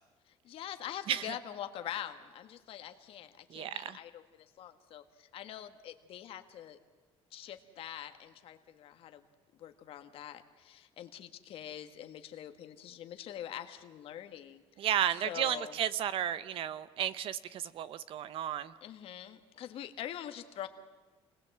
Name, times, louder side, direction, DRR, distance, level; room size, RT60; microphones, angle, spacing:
voice 1, 0.3-6.8 7.3-9.2 9.6-14.6 15.1-15.7 18.8-20.7, left 11 dB, 60° left, 8 dB, 1.6 m, -44 dB
voice 2, 3.5-4.0 14.8-18.7, right 10 dB, 55° right, 16 dB, 0.8 m, -33 dB
28.0 x 19.5 x 7.9 m, 1.3 s
cardioid pair, 155°, 11 cm